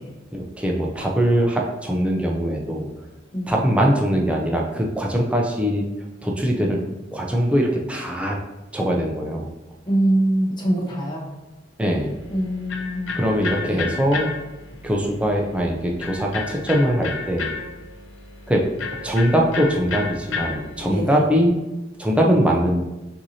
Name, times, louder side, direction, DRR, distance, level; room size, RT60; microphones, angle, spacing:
voice 1, 0.3-2.9 3.5-5.8 6.2-6.8 7.1-8.4 8.7-9.5 11.8-12.1 13.2-14.3 14.8-17.5 18.5-18.6 19.0-21.6 22.0-22.8, equal, 5° right, -1 dB, 0.4 m, -21 dB
voice 2, 3.3-3.7 9.8-11.3 12.3-13.3 13.6-13.9 20.9-21.3, right 1 dB, 25° left, -3 dB, 1.0 m, -24 dB
Electric guitar, 12.0-21.0, left 5 dB, 85° left, 0.6 m, -33 dB
5.9 x 2.7 x 2.7 m, 1.0 s
head